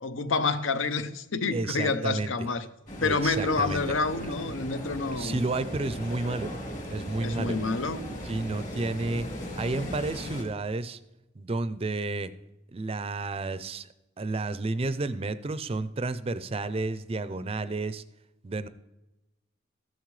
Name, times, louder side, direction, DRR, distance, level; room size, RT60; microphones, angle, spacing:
voice 1, 0.0-2.7 3.0-5.4 7.2-8.1, left 3 dB, 75° left, 0.7 m, -28 dB
voice 2, 1.5-2.3 3.0-4.0 5.1-6.5 6.9-7.6 8.2-9.3 9.5-11.0 11.4-12.3 12.7-13.9 14.2-18.0 18.4-18.7, right 2 dB, 30° right, 0.4 m, -31 dB
sound 1, 2.9-10.4, equal, 40° left, 2.6 m, -38 dB
14.0 x 10.5 x 3.2 m
head